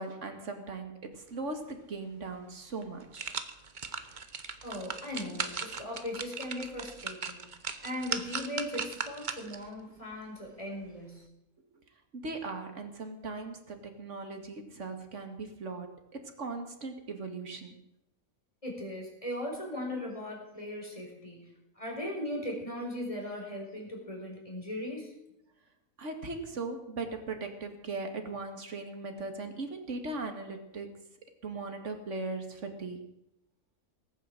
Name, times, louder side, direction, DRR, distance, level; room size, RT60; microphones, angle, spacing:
voice 1, 0.0-3.3 12.1-17.8 26.0-31.0 31.4-33.1, right 3 dB, 55° right, 6 dB, 2.3 m, -39 dB
sound 1, 2.3-2.4 2.8-9.7 10.1-10.2, right 5 dB, 35° right, 1.0 m, -38 dB
voice 2, 4.6-7.5 7.8-11.3 18.6-21.4 21.8-25.1, left 1 dB, 20° left, -1 dB, 4.7 m, -38 dB
19.0 x 9.1 x 7.6 m, 0.85 s
omnidirectional pair, 1.5 m